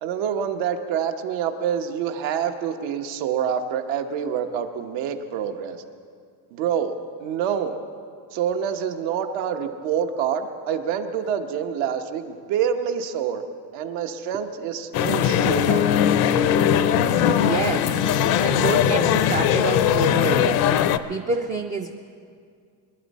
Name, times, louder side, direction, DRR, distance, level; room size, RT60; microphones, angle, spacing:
voice 1, 0.0-5.8 6.5-6.9 7.2-7.8 8.3-13.4 13.7-15.8, right 8 dB, 80° right, 6 dB, 1.2 m, -26 dB
sound 1, 14.9-21.0, left 9 dB, 55° left, 0.5 m, -20 dB
voice 2, 17.4-18.0 18.4-21.9, right 4 dB, 20° right, 3 dB, 0.3 m, -27 dB
22.0 x 11.5 x 4.2 m, 2.2 s
cardioid pair, 160°, 45 cm